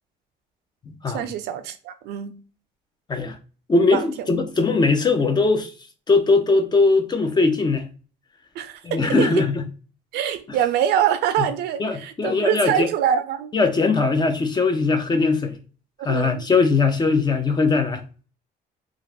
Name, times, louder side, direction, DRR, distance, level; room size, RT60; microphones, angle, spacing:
voice 1, 1.1-2.3 3.9-4.0 8.6-9.4 10.1-13.5 16.0-16.5, right 10 dB, 80° right, 0.5 m, -24 dB
voice 2, 3.7-5.7 6.1-7.9 8.8-9.7 10.5-10.6 11.8-12.9 13.5-15.6 16.0-18.0, left 3 dB, 25° left, 0.6 m, -20 dB
2.5 x 2.4 x 3.3 m
cardioid pair, 110°, 17 cm